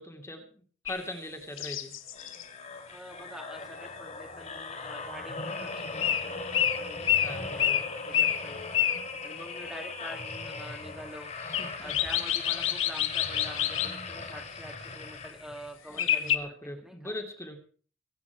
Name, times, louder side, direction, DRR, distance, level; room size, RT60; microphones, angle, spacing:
voice 1, 0.0-1.9 7.2-7.8 11.4-12.0 15.9-17.6, left 1 dB, 15° left, 4 dB, 2.7 m, -41 dB
sound 1, 0.8-1.0 1.6-2.4 6.0-6.3 6.5-9.1 11.5-14.0 16.0-16.4, left 10 dB, 80° left, 1.6 m, -27 dB
sound 2, 2.1-15.7 16.2-16.4, left 3 dB, 35° left, 3.9 m, -39 dB
voice 2, 2.9-7.1 7.3-8.7 9.2-11.3 11.8-17.1, equal, 5° right, 1 dB, 2.5 m, -46 dB
23.5 x 9.7 x 4.7 m, 0.43 s
head